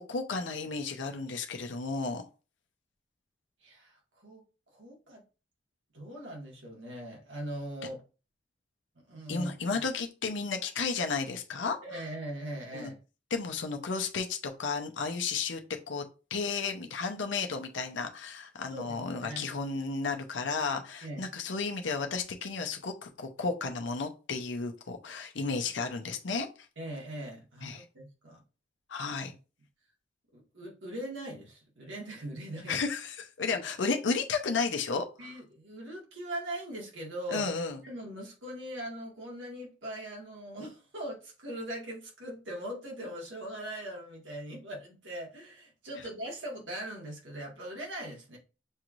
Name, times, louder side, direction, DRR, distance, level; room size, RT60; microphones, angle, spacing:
voice 1, 0.0-2.2 9.3-12.1 12.7-12.9 13.3-15.6 15.9-16.0 16.3-26.5 27.6-27.8 28.9-29.3 32.7-35.3 37.3-37.8, left 4 dB, 85° left, 0.7 m, -33 dB
voice 2, 3.6-4.4 4.7-5.2 5.9-8.0 9.1-9.5 11.8-13.0 18.7-19.4 21.0-21.3 26.8-28.4 30.3-32.8 33.5-33.6 35.2-37.5 37.8-48.4, right 1 dB, 85° right, 1.8 m, -40 dB
6.3 x 3.0 x 2.5 m
head